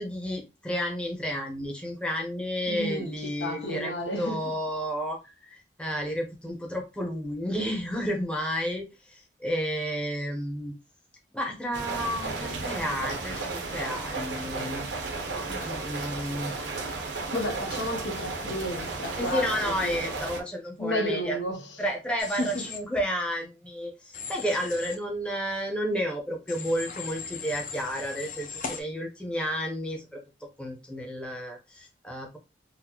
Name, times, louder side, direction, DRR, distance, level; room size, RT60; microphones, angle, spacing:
voice 1, 0.0-10.8 11.3-14.8 15.5-16.5 19.2-21.4 21.8-30.2 30.6-32.4, equal, 5° left, 0.7 m, -31 dB
voice 2, 2.7-3.1 3.4-4.4 17.3-19.5 19.8-19.9 20.8-21.6 22.4-22.5, equal, 85° left, 0.9 m, -31 dB
sound 1, 11.7-20.4, right 3 dB, 80° right, 0.8 m, -34 dB
Human voice / Train, 22.2-22.8 24.1-25.0 26.5-28.8, left 5 dB, 45° left, 0.5 m, -38 dB
4.0 x 2.0 x 2.9 m
head